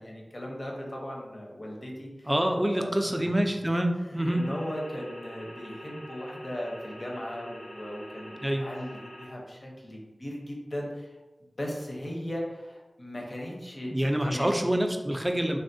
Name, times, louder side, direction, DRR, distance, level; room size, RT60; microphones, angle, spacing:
voice 1, 0.0-3.4 3.9-11.2 11.4-14.5, equal, 50° left, -2 dB, 0.7 m, -38 dB
voice 2, 2.3-4.4 8.4-8.7 13.9-15.6, right 1 dB, 15° right, 4 dB, 0.3 m, -26 dB
sound 1, 4.2-9.3, equal, 65° left, 1.2 m, -45 dB
3.4 x 2.0 x 2.6 m, 1.1 s
wide cardioid pair, 70°, 0 cm